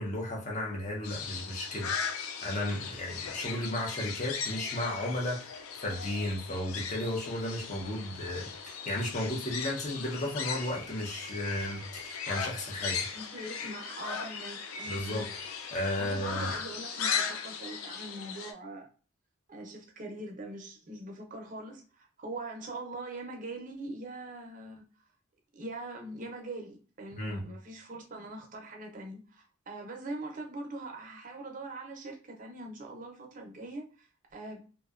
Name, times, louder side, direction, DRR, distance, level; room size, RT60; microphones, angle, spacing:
voice 1, 0.0-13.1 14.9-15.4 15.7-16.5 27.1-27.5, left 1 dB, 35° left, 0.6 m, -34 dB
sound 1, 1.0-18.5, left 6 dB, 85° left, 0.4 m, -38 dB
voice 2, 13.1-15.3 16.0-18.9 19.5-24.8 25.5-34.6, right 2 dB, 40° right, 0.5 m, -42 dB
2.6 x 2.1 x 2.4 m
head